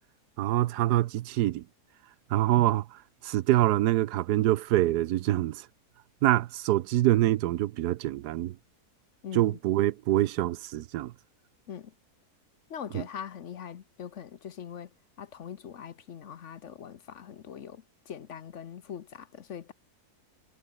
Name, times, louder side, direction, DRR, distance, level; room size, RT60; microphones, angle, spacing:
voice 1, 0.4-1.6 2.3-2.8 3.2-5.6 6.2-8.5 9.3-11.1 12.9-13.0, right 14 dB, 85° right, 1.2 m, -25 dB
voice 2, 9.2-9.6 11.7-11.9 12.7-14.9 15.2-19.7, left 8 dB, 55° left, 1.1 m, -42 dB
omnidirectional pair, 1.7 m